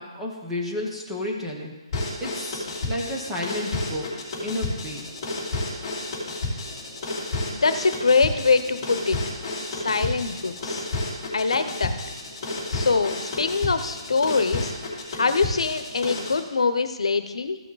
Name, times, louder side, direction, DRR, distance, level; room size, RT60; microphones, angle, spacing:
voice 1, 0.0-1.7 2.2-4.1 4.4-5.1, left 1 dB, 5° right, -3 dB, 0.9 m, -31 dB
sound 1, 1.9-16.4, left 2 dB, 15° left, 3.3 m, -31 dB
voice 2, 7.5-9.2 9.7-10.9 11.3-12.0 12.7-14.7 15.1-17.6, left 4 dB, 85° left, 10 dB, 0.8 m, -23 dB
14.5 x 5.9 x 4.0 m, 1.2 s
hypercardioid pair, 175°, 3 cm